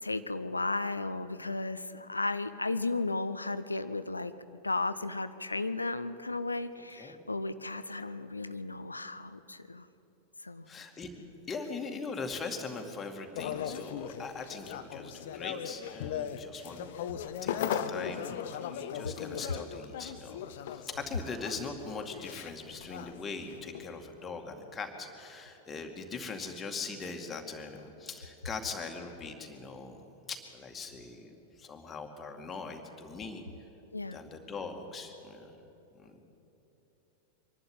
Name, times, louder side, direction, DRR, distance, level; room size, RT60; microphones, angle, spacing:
voice 1, 0.0-4.3 4.6-9.9 10.4-10.7 33.9-34.2, left 3 dB, 80° left, 13 dB, 0.6 m, -34 dB
voice 2, 10.7-11.1 11.5-16.8 17.4-33.4 34.1-35.6 36.0-36.2, left 4 dB, 20° left, 3 dB, 2.2 m, -41 dB
sound 1, 13.4-23.9, left 8 dB, 55° left, 0.8 m, -38 dB
24.5 x 11.5 x 9.1 m, 3.0 s
figure-of-eight pair, 90°, 0 cm